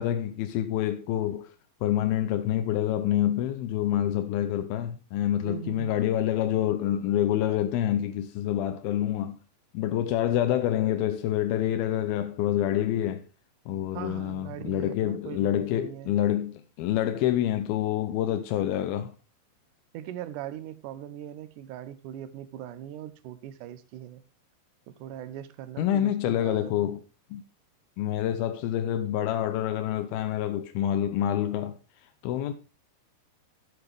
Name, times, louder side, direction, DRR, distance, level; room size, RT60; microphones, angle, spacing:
voice 1, 0.0-1.5 1.8-9.4 9.7-13.3 13.7-19.1 25.8-27.0 27.3-27.4 28.0-31.8 32.2-32.5, left 11 dB, 75° left, 2.4 m, -27 dB
voice 2, 5.4-5.9 13.9-16.2 19.9-24.2 24.9-26.8, right 11 dB, 80° right, 1.9 m, -40 dB
12.5 x 8.8 x 3.4 m
omnidirectional pair, 4.8 m